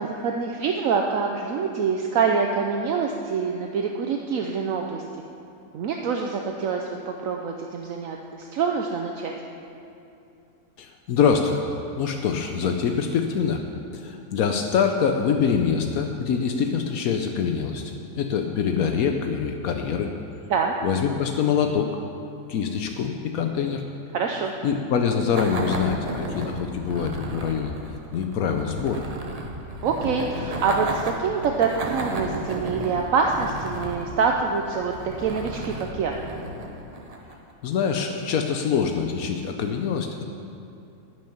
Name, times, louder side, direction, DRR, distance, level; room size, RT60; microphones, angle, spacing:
voice 1, 0.0-5.0 5.7-9.3 20.5-20.7 24.1-24.5 29.8-36.1, right 5 dB, 70° right, 2 dB, 1.1 m, -25 dB
voice 2, 10.8-11.6 12.0-13.6 13.9-20.1 20.8-22.0 22.5-23.8 24.6-29.1 37.6-40.2, left 6 dB, 80° left, 4 dB, 1.1 m, -25 dB
sound 1, 25.3-37.5, right 1 dB, 30° right, 0.8 m, -34 dB
11.5 x 6.3 x 9.1 m, 2.7 s
omnidirectional pair, 1.5 m